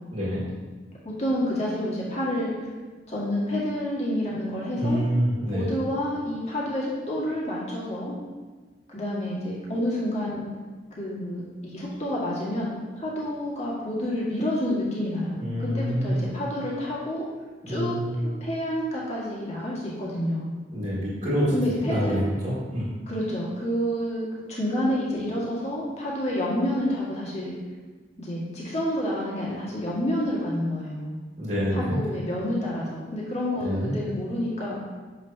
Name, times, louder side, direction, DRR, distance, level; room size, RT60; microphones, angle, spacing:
voice 1, 0.1-0.4 4.8-5.6 15.4-16.3 17.6-18.1 20.7-22.9 31.4-32.0 33.6-33.9, equal, 35° right, -9 dB, 1.7 m, -26 dB
voice 2, 1.0-2.5 3.1-5.0 5.5-8.1 8.9-10.5 10.9-17.2 17.7-18.0 18.4-20.5 21.5-22.2 23.1-27.5 28.2-31.2 31.7-34.8, left 1 dB, 35° left, -6 dB, 1.7 m, -29 dB
7.2 x 5.8 x 2.7 m, 1.3 s
head